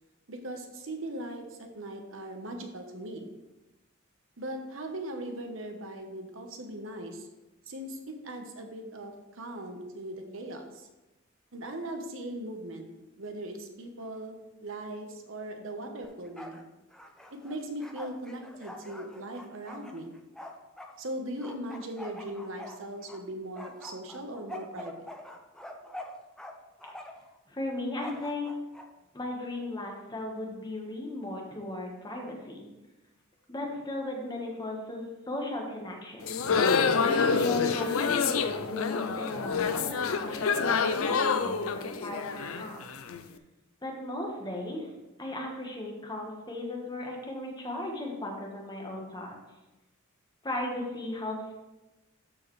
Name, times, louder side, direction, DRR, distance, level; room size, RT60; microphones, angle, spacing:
voice 1, 0.3-3.3 4.4-7.3 7.7-10.9 11.5-12.9 13.2-16.6 17.3-20.2 21.0-25.1, right 1 dB, 65° right, 4 dB, 1.1 m, -39 dB
Bark, 16.0-16.6 16.9-20.9 21.4-23.2 23.6-26.5 26.8-27.3 28.0-28.9, left 1 dB, 5° left, 0.5 m, -45 dB
voice 2, 27.5-28.5 29.1-32.7 33.5-36.4 37.0-42.9 43.8-44.9 45.2-49.3 50.4-51.5, left 1 dB, 20° left, 0 dB, 1.3 m, -36 dB
sound 1, 36.2-43.2, left 5 dB, 85° left, 0.5 m, -27 dB
12.5 x 4.7 x 3.2 m, 1.0 s
head